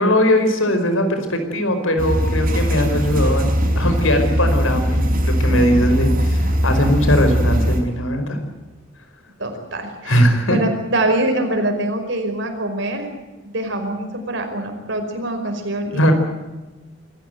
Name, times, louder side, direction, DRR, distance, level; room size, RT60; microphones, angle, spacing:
voice 1, 0.0-8.4 10.0-10.6 15.9-16.1, equal, 85° left, 7 dB, 5.1 m, -19 dB
sound 1, 2.0-7.8, equal, 50° right, 5.7 m, -19 dB
voice 2, 9.4-13.1 13.4-16.1, right 1 dB, 65° right, 5 dB, 5.2 m, -24 dB
26.0 x 15.0 x 9.2 m, 1.1 s
head